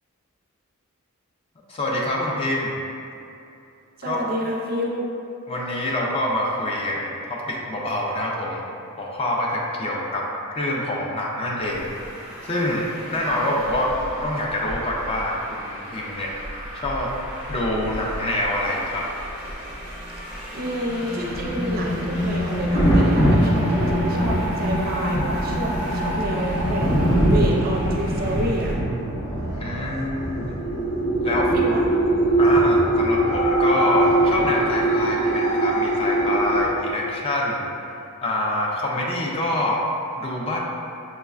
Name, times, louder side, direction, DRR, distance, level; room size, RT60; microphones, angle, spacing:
voice 1, 1.7-2.8 4.0-4.2 5.5-8.6 9.0-11.9 12.4-13.9 14.2-17.1 17.5-19.1 29.5-30.6 31.2-31.5 32.4-37.7 38.2-39.8 40.2-40.6, left 1 dB, 25° left, -2 dB, 0.4 m, -26 dB
voice 2, 4.0-5.1 20.1-28.7 31.2-32.0, equal, 45° right, -1 dB, 0.4 m, -29 dB
Traffic noise roadway noise, 11.6-28.7, equal, 5° right, 0.7 m, -36 dB
sound 1, 20.9-36.6, right 1 dB, 85° left, 1.1 m, -23 dB
Thunder, 21.2-34.9 36.5-36.8, equal, 55° left, 0.7 m, -26 dB
5.8 x 2.1 x 2.3 m, 2.7 s
head